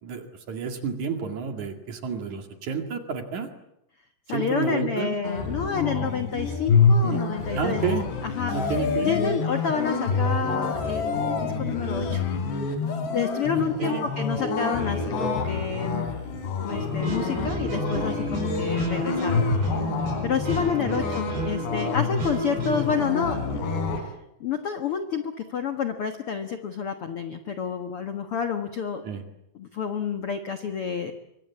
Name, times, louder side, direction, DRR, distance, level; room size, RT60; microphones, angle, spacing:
voice 1, 0.0-3.5 4.3-5.2 7.0-7.2 7.5-8.1 8.5-9.1 13.6-14.1 20.6-21.0 29.0-29.2, right 6 dB, 50° right, 6 dB, 3.2 m, -30 dB
voice 2, 4.3-7.8 8.2-8.7 9.0-12.3 13.1-16.1 16.6-19.5 20.2-23.6 24.0-24.1 24.4-29.0 29.5-31.1, left 6 dB, 70° left, 7 dB, 1.3 m, -29 dB
sound 1, 5.2-24.0, left 4 dB, 90° left, 5.9 m, -27 dB
sound 2, 7.4-13.5, left 6 dB, 45° left, 2.2 m, -33 dB
sound 3, 16.7-22.9, right 2 dB, 70° right, 8.8 m, -32 dB
26.0 x 24.5 x 8.4 m, 0.83 s
omnidirectional pair, 4.8 m